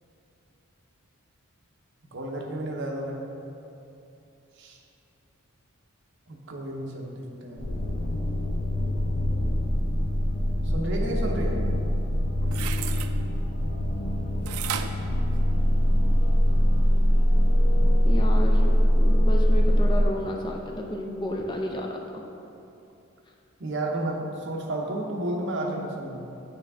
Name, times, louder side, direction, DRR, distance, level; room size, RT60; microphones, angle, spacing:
voice 1, 2.1-3.3 4.6-4.8 6.3-7.8 10.6-11.6 23.6-26.2, right 1 dB, 60° right, 0 dB, 0.7 m, -32 dB
sound 1, 7.6-20.0, equal, 75° left, 0.8 m, -23 dB
sound 2, 12.4-13.1 14.5-16.0 16.5-16.6, right 10 dB, 85° right, 0.3 m, -34 dB
voice 2, 18.0-22.2, left 1 dB, 20° left, 1 dB, 0.4 m, -32 dB
8.4 x 3.4 x 3.5 m, 2.8 s
head